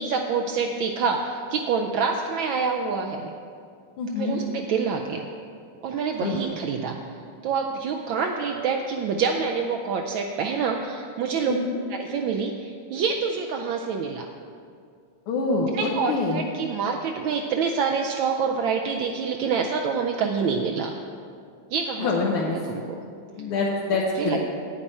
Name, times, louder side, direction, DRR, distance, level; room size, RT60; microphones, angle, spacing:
voice 1, 0.0-3.3 4.2-5.3 5.8-7.0 7.4-11.6 11.9-14.3 15.7-20.9 21.7-22.1 22.4-22.8 24.2-24.4, right 5 dB, 75° right, 3 dB, 1.2 m, -26 dB
voice 2, 4.0-4.4 6.2-6.6 11.5-11.8 15.3-16.4 22.0-22.6 23.4-24.4, left 3 dB, 85° left, -3 dB, 1.8 m, -25 dB
9.8 x 8.8 x 4.2 m, 2.3 s
omnidirectional pair, 2.3 m